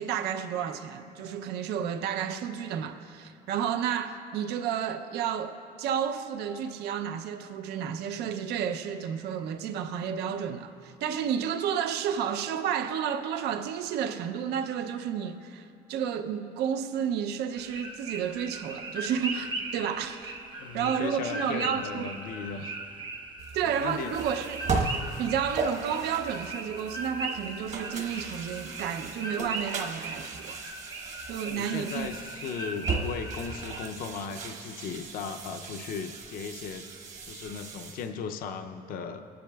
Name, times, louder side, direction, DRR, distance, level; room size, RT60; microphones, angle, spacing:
voice 1, 0.0-20.4 20.7-22.1 23.5-24.7 25.2-30.6 31.3-32.1, right 8 dB, 85° right, 0.6 m, -31 dB
sound 1, 17.5-33.9, right 2 dB, 30° right, 0.7 m, -39 dB
voice 2, 20.6-22.8 23.6-24.1 31.4-36.9 37.2-39.2, left 6 dB, 60° left, 0.5 m, -37 dB
sound 2, 23.4-38.1, right 4 dB, 45° right, 1.1 m, -37 dB
21.0 x 10.0 x 2.3 m
cardioid pair, 160°, 17 cm